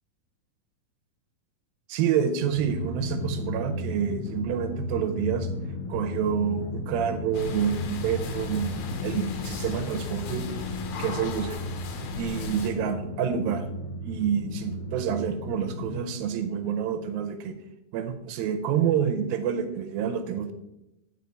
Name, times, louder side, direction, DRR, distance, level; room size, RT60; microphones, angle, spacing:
voice 1, 1.9-5.5 5.9-10.4 11.0-11.6 12.2-13.6 14.0-17.5 17.9-20.5, right 8 dB, 80° right, 7 dB, 2.5 m, -28 dB
Drum, 2.5-15.9, left 2 dB, 30° left, 1.7 m, -34 dB
sound 1, 7.3-12.7, left 4 dB, 85° left, 2.8 m, -38 dB
9.5 x 4.6 x 5.5 m, 0.90 s
omnidirectional pair, 4.3 m